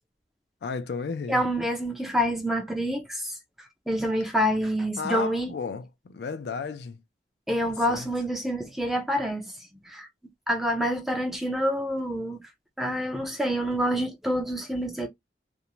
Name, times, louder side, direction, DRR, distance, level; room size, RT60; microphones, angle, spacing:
voice 1, 0.6-1.4 5.0-7.0 7.9-8.1, left 5 dB, 70° left, 0.4 m, -33 dB
voice 2, 1.3-3.4 3.9-5.5 7.5-9.5 9.9-10.1 10.5-12.4 12.8-15.1, equal, ahead, 0.4 m, -27 dB
2.5 x 2.0 x 2.9 m
head